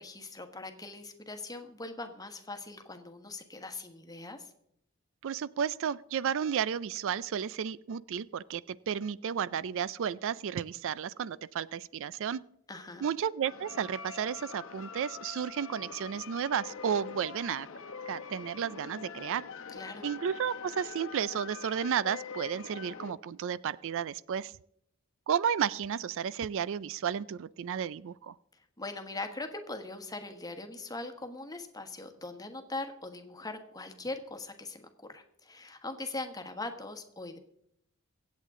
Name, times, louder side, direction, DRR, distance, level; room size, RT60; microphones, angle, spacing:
voice 1, 0.0-4.5 12.7-13.1 19.7-20.0 28.8-37.4, left 2 dB, 20° left, 6 dB, 1.3 m, -41 dB
voice 2, 5.2-12.4 13.0-17.7 18.1-19.5 20.0-24.5 25.3-28.3, right 8 dB, 65° right, 20 dB, 0.4 m, -33 dB
sound 1, 13.5-23.1, left 6 dB, 65° left, 1.0 m, -44 dB
24.5 x 8.4 x 3.7 m, 0.74 s
head